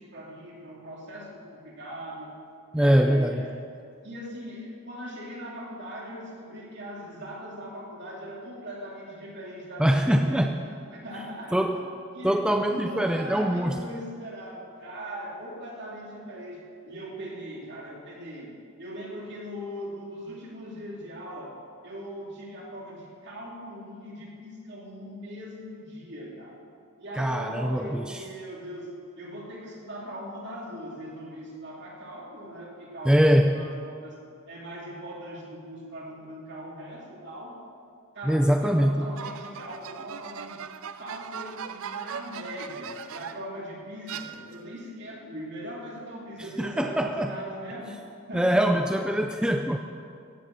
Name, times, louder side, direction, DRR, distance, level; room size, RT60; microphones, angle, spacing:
voice 1, 0.0-2.3 2.8-3.5 4.0-10.6 10.9-11.7 12.1-12.4 12.7-21.6 21.8-26.6 27.0-37.6 38.1-40.6 41.0-48.7, equal, 55° right, -3 dB, 2.8 m, -40 dB
voice 2, 2.7-3.4 9.8-10.6 11.5-11.8 12.2-13.8 27.2-28.2 33.0-33.6 38.3-39.1 46.6-47.4 48.3-49.8, equal, 5° right, 5 dB, 0.4 m, -23 dB
sound 1, 39.2-43.6 44.1-44.8, right 7 dB, 70° right, 0.5 m, -39 dB
16.0 x 7.1 x 7.5 m, 2.4 s
head